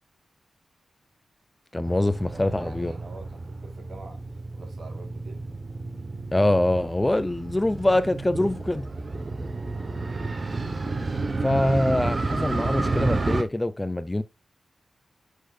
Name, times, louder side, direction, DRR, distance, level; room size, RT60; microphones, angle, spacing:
voice 1, 1.7-2.9 6.3-8.9 11.4-14.2, left 1 dB, 15° left, 0.5 m, -24 dB
Motorcycle, 1.9-13.4, right 3 dB, 35° right, 1.0 m, -31 dB
voice 2, 2.3-4.2 4.5-5.4 10.0-10.2, right 3 dB, 55° right, 3.8 m, -45 dB
11.0 x 6.5 x 2.4 m
wide cardioid pair, 145°, 0 cm